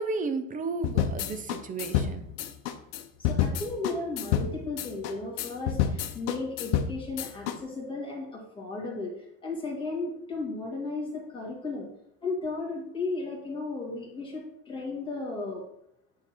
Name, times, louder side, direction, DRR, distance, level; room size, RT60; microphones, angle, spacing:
voice 1, 0.0-2.2, right 3 dB, 25° right, 8 dB, 0.7 m, -33 dB
sound 1, 0.8-7.6, left 9 dB, 80° left, 0.8 m, -29 dB
voice 2, 3.2-11.9 12.2-15.6, left 3 dB, 15° left, -2 dB, 2.2 m, -35 dB
8.8 x 3.9 x 4.4 m, 0.78 s
supercardioid pair, 135°, 34 cm